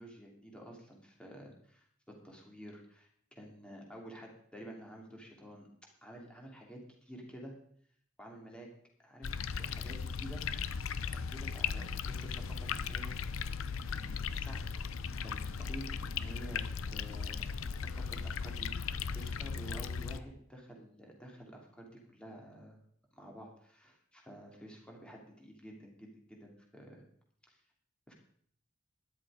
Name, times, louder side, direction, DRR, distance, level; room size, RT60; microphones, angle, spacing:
voice 1, 0.0-5.7 6.0-7.5 8.2-8.7 9.0-10.4 11.1-13.4 13.9-14.6 15.2-17.5 17.9-22.8 23.2-27.0 27.5-27.6 28.1-28.2, right 1 dB, 5° left, 0 dB, 3.0 m, -50 dB
sound 1, 9.2-20.2, left 6 dB, 80° left, 0.6 m, -37 dB
13.0 x 11.0 x 5.0 m, 0.64 s
head